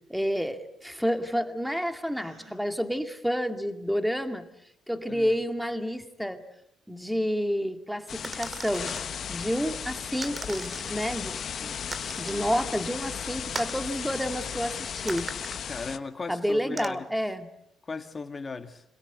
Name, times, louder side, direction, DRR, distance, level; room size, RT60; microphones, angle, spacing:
voice 1, 0.1-4.5 4.9-6.4 6.9-8.9 9.3-11.8 12.2-15.3 16.3-17.5, equal, ahead, 2.2 m, -29 dB
Gasp, 2.1-2.6, right 2 dB, 65° right, 6.2 m, -54 dB
voice 2, 5.1-5.4 15.7-17.0 17.8-18.8, left 4 dB, 30° left, 2.4 m, -37 dB
sound 1, 8.1-16.0, left 7 dB, 55° left, 1.3 m, -35 dB
sound 2, 8.2-9.1 10.2-11.0 11.9-12.5 13.5-13.8 15.1-15.6 16.8-16.9, right 3 dB, 30° right, 2.1 m, -38 dB
26.5 x 22.0 x 8.2 m
cardioid pair, 75°, 0 cm